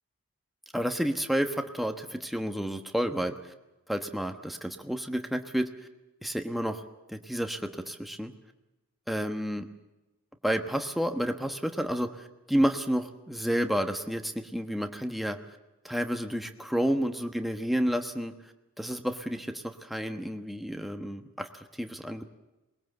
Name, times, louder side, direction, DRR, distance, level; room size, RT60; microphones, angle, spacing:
voice 1, 0.7-3.4 3.9-5.7 6.2-6.8 7.1-8.3 9.1-9.7 10.4-15.4 15.8-18.3 18.8-22.2, equal, ahead, 5 dB, 1.2 m, -30 dB
21.5 x 21.0 x 7.9 m, 1.0 s
head